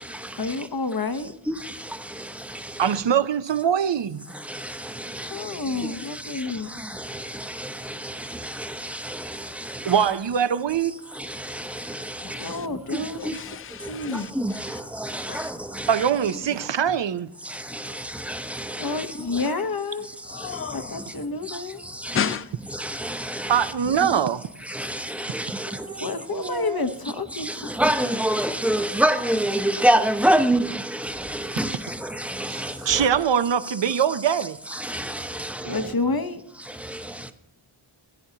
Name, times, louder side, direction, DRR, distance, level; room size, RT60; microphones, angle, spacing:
voice 1, 0.4-1.3 5.3-6.7 12.4-13.4 13.8-14.3 18.8-20.1 20.7-21.8 26.0-27.5 35.7-36.4, left 3 dB, 50° left, 0.9 m, -29 dB
voice 2, 2.8-4.2 9.9-11.0 15.9-17.3 23.5-24.5 32.5-34.6, right 8 dB, 60° right, 0.6 m, -22 dB
voice 3, 12.2-12.7 13.3-14.3 15.2-15.5 20.3-21.0 22.1-22.5, left 8 dB, 30° left, 0.4 m, -32 dB
voice 4, 25.6-26.9 35.6-36.0, right 4 dB, 35° right, 1.4 m, -36 dB
voice 5, 27.8-30.7 31.6-31.8 32.4-32.5 34.9-35.0, right 1 dB, 5° right, 0.8 m, -21 dB
16.5 x 10.0 x 2.8 m
wide cardioid pair, 65°, 49 cm